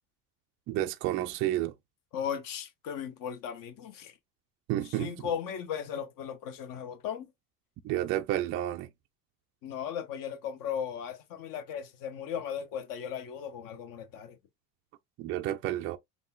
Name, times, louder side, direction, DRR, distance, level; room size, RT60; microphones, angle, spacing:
voice 1, 0.7-1.7 4.7-5.1 7.8-8.9 15.2-16.0, right 13 dB, 30° right, 0.3 m, -30 dB
voice 2, 2.1-4.2 4.8-7.3 9.6-14.4, left 8 dB, 45° left, 0.9 m, -37 dB
5.3 x 2.5 x 2.3 m
figure-of-eight pair, 70°, 48 cm